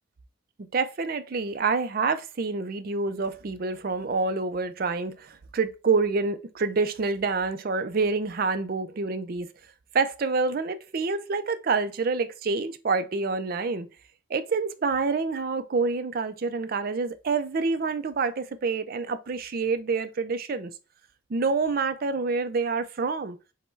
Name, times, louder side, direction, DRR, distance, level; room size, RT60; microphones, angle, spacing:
voice 1, 0.7-9.5 9.9-13.9 14.3-20.7 21.3-23.4, right 4 dB, 45° right, 0.4 m, -27 dB
5.2 x 2.2 x 4.5 m
head